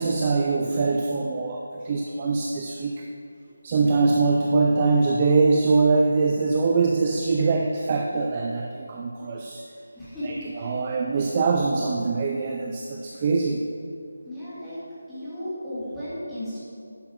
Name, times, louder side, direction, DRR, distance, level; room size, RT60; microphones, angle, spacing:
voice 1, 0.0-3.0 3.6-9.6 10.2-10.3 10.6-13.6, right 3 dB, 15° right, 1 dB, 0.4 m, -23 dB
voice 2, 9.9-10.7 11.1-11.4 14.2-14.8 15.1-16.6, left 1 dB, ahead, -16 dB, 2.2 m, -35 dB
10.5 x 6.7 x 5.8 m, 2.5 s
figure-of-eight pair, 180°, 0 cm